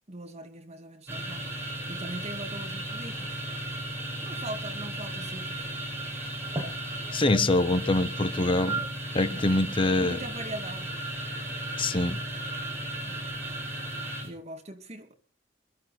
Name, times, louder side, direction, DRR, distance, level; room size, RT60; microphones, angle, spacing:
voice 1, 0.0-1.5 1.9-3.4 4.2-5.7 9.2-9.5 10.0-10.9 13.1-13.3 14.2-15.1, right 1 dB, 35° right, 2.1 m, -41 dB
sound 1, 1.1-14.3, right 1 dB, 15° right, 5.7 m, -35 dB
voice 2, 7.1-8.9 9.1-10.2 11.8-12.2, left 2 dB, 30° left, 0.8 m, -24 dB
21.5 x 13.5 x 4.2 m
head